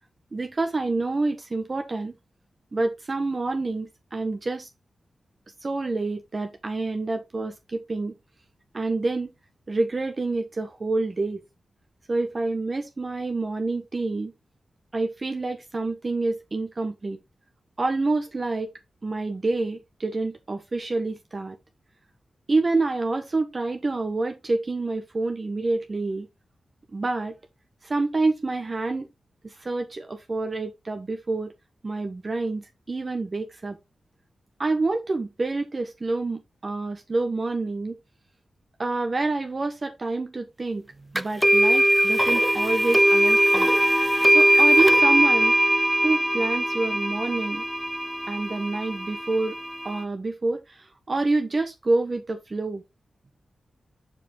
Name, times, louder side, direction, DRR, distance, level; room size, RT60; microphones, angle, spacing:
voice 1, 0.3-2.1 2.7-4.7 5.6-8.1 8.7-9.3 9.7-11.4 12.1-14.3 14.9-17.2 17.8-18.7 19.0-21.6 22.5-26.3 26.9-27.3 27.8-29.1 29.4-31.5 31.8-33.8 34.6-38.0 38.8-43.7 44.3-45.5 46.0-47.6 48.3-49.5 49.8-52.8, right 3 dB, 40° right, 1.1 m, -27 dB
sound 1, 41.2-50.0, equal, 5° right, 0.6 m, -21 dB
6.8 x 5.2 x 3.5 m
cardioid pair, 75°, 0 cm